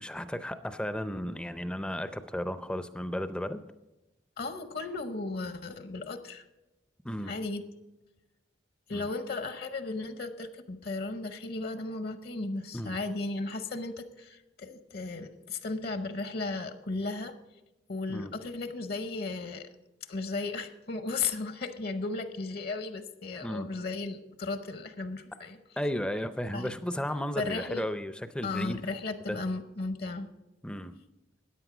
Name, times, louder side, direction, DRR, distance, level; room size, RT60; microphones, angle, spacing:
voice 1, 0.0-3.6 7.0-7.3 8.9-9.1 12.7-13.0 18.1-18.3 23.4-23.7 25.8-28.8 29.3-29.4 30.6-30.9, equal, 5° left, 11 dB, 0.4 m, -34 dB
voice 2, 4.4-6.4 7.3-7.6 8.9-17.3 17.9-19.7 20.1-25.6 26.5-26.7 27.4-27.8 28.4-30.3, left 3 dB, 55° left, 10 dB, 0.8 m, -35 dB
14.0 x 9.7 x 5.0 m, 1.0 s
head